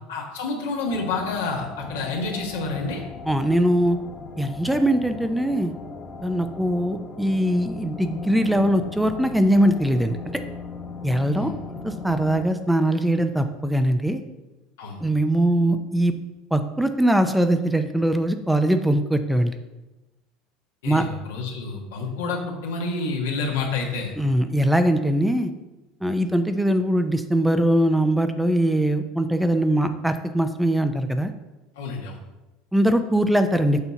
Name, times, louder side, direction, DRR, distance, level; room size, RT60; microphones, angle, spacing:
voice 1, 0.1-3.0 11.3-11.5 14.8-15.0 20.8-24.1 31.8-32.2, left 3 dB, 85° left, 0 dB, 1.4 m, -29 dB
sound 1, 0.9-12.5, left 4 dB, 30° left, 0.9 m, -38 dB
voice 2, 3.3-4.0 4.4-5.7 6.2-10.4 11.0-11.5 11.8-14.2 15.0-16.1 16.5-19.5 20.8-21.1 24.2-25.5 26.0-31.3 32.7-33.8, right 1 dB, 5° right, 8 dB, 0.5 m, -21 dB
7.0 x 2.7 x 5.7 m, 1.1 s
supercardioid pair, 100°, 0 cm